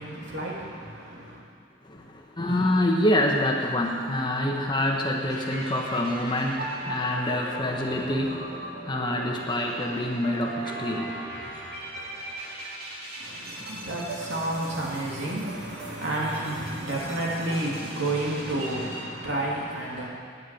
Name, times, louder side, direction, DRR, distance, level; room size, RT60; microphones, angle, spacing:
voice 1, 0.0-1.4 13.2-20.1, right 1 dB, 75° right, -4 dB, 3.0 m, -31 dB
voice 2, 1.8-11.3, left 1 dB, 25° left, 1 dB, 1.1 m, -26 dB
sound 1, 5.3-19.0, right 1 dB, 55° right, 2.4 m, -39 dB
9.9 x 9.5 x 8.6 m, 2.2 s
head